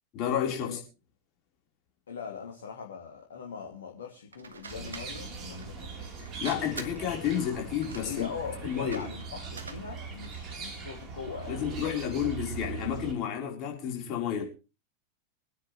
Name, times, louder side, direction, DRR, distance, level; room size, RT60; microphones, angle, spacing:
voice 1, 0.1-0.8 6.4-8.3 8.6-9.0 11.5-14.4, left 9 dB, 40° left, 4.4 m, -31 dB
voice 2, 2.1-6.1 8.0-12.0, left 6 dB, 65° left, 2.6 m, -41 dB
sound 1, 4.3-10.7, right 4 dB, 70° right, 1.6 m, -47 dB
sound 2, 4.7-13.1, right 5 dB, 30° right, 4.0 m, -40 dB
24.5 x 9.8 x 3.3 m
figure-of-eight pair, 90°, 0 cm